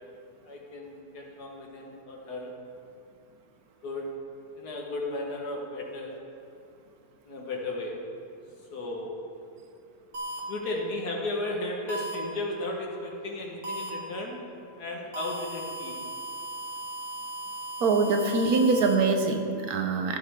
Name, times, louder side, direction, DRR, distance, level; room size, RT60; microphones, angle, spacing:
voice 1, 0.5-2.5 3.8-4.1 4.6-6.1 7.3-8.0 8.7-9.2 10.5-14.4 14.8-16.0, left 2 dB, 85° left, -1 dB, 2.1 m, -34 dB
sound 1, 10.1-10.4 11.9-12.1 13.6-13.9 15.1-18.9, right 1 dB, 50° right, 1.7 m, -37 dB
voice 2, 17.8-20.2, right 3 dB, 70° right, 5 dB, 1.3 m, -24 dB
14.0 x 8.7 x 3.7 m, 2.5 s
omnidirectional pair, 1.7 m